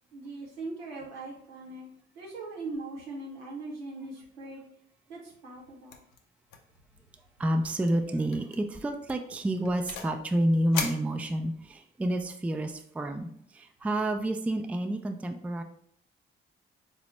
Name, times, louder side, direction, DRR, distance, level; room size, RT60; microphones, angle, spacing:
voice 1, 0.1-1.9 2.1-4.6 5.1-6.0, right 3 dB, 85° right, -3 dB, 0.9 m, -40 dB
sound 1, 5.9-6.2 6.5-6.8 7.0-7.1 7.6-7.9 8.3-8.6 9.1-10.2 10.7-11.7, left 6 dB, 70° left, 0.5 m, -38 dB
voice 2, 7.4-15.6, right 1 dB, 5° right, 6 dB, 0.3 m, -29 dB
4.1 x 2.0 x 3.1 m, 0.65 s
hypercardioid pair, 45°, 29 cm